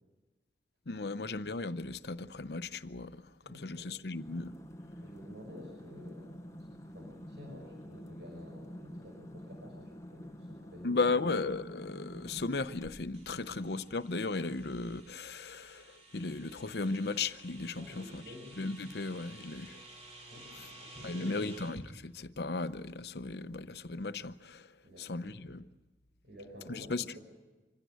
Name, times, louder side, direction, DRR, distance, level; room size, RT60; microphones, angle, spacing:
voice 1, 0.9-4.5 10.8-18.2 18.6-19.8 21.0-24.7 25.0-25.6 26.8-27.0, left 3 dB, 65° left, 0.8 m, -36 dB
voice 2, 3.4-3.9 5.0-11.0 13.3-13.7 17.8-18.5 20.3-21.5 24.8-25.4 26.2-27.2, left 1 dB, 85° right, 5.9 m, -51 dB
sound 1, 4.1-13.3, equal, 15° left, 0.9 m, -48 dB
sound 2, 13.1-21.9, right 1 dB, 40° right, 3.5 m, -53 dB
25.5 x 16.5 x 9.3 m
head